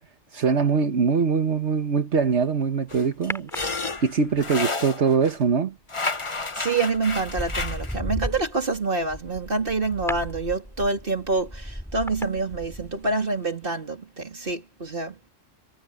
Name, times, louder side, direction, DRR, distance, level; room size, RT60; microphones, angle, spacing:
voice 1, 0.3-3.5 4.0-5.7, right 5 dB, 80° right, 1.6 m, -22 dB
sound 1, 2.9-5.4 5.9-8.0, left 3 dB, 30° left, 1.1 m, -31 dB
sound 2, 3.3-4.3 6.2-6.5 7.0-13.2 13.4-13.5, equal, ahead, 6.8 m, -35 dB
voice 2, 6.5-15.3, right 3 dB, 50° right, 3.6 m, -27 dB
omnidirectional pair, 1.1 m